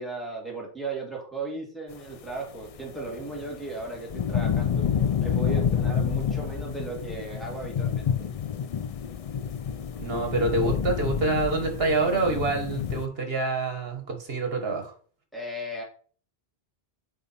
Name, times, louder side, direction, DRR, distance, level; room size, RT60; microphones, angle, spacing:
voice 1, 0.0-4.9 5.2-8.3 15.3-15.8, right 2 dB, ahead, -3 dB, 2.4 m, -36 dB
sound 1, 2.6-13.1, left 8 dB, 50° left, 0.4 m, -28 dB
voice 2, 10.0-14.9, right 3 dB, 65° right, 4 dB, 1.8 m, -26 dB
8.5 x 3.7 x 4.4 m, 0.43 s
omnidirectional pair, 1.1 m